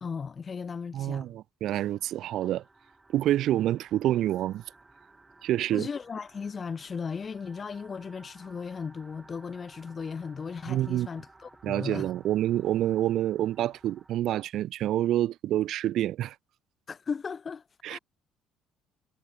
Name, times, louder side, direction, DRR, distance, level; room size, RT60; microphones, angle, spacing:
voice 1, 0.0-1.3 5.7-12.1 16.9-18.0, left 5 dB, 35° left, 1.7 m, -36 dB
voice 2, 0.9-2.6 3.1-4.6 5.4-5.9 10.7-11.1 11.6-16.4 17.8-18.0, right 13 dB, 60° right, 0.3 m, -27 dB
sound 1, 1.7-14.2, right 2 dB, 20° right, 6.9 m, -57 dB
figure-of-eight pair, 50°, 0 cm